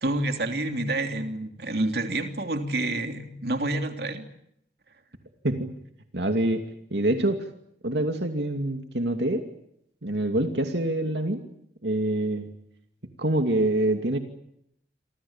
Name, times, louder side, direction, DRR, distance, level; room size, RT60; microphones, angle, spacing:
voice 1, 0.0-4.2, right 2 dB, 65° right, 5 dB, 3.0 m, -28 dB
voice 2, 6.1-7.5 7.8-9.5 10.0-11.4 11.8-12.5 13.2-14.2, right 1 dB, 80° right, 5 dB, 2.6 m, -25 dB
28.5 x 25.5 x 7.4 m, 0.74 s
head